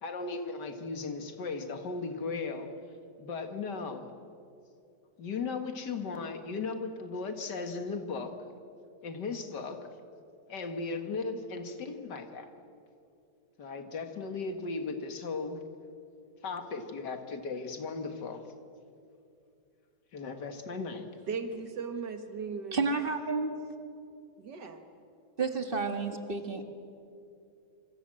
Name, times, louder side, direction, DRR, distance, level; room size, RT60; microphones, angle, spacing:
voice 1, 0.0-2.7 3.2-4.1 5.2-8.3 9.0-9.8 10.5-12.5 13.6-15.6 16.4-18.4 20.1-21.1, left 4 dB, 85° left, 7 dB, 2.4 m, -36 dB
voice 2, 21.3-22.8 24.4-24.8, right 5 dB, 80° right, 7 dB, 2.3 m, -37 dB
voice 3, 22.7-23.5 25.4-26.6, right 4 dB, 35° right, 6 dB, 1.9 m, -30 dB
26.5 x 24.0 x 7.7 m, 2.6 s
omnidirectional pair, 1.8 m